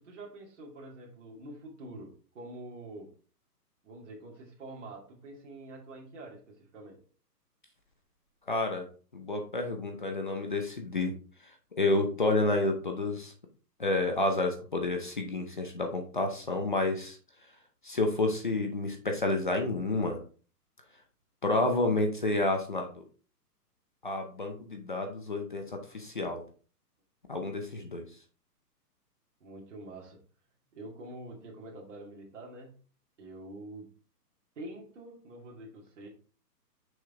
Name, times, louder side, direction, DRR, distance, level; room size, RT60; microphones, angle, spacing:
voice 1, 0.0-3.1 3.8-7.0 29.4-30.2 30.7-32.8 33.2-33.9 34.6-36.1, right 1 dB, 45° right, -2 dB, 2.4 m, -46 dB
voice 2, 8.5-8.9 9.1-11.1 11.8-13.3 13.8-17.2 17.8-20.2 21.4-23.0 24.0-26.4 27.3-28.0, left 2 dB, 30° left, 4 dB, 0.7 m, -30 dB
6.3 x 4.9 x 3.6 m, 0.39 s
hypercardioid pair, 180°, 48 cm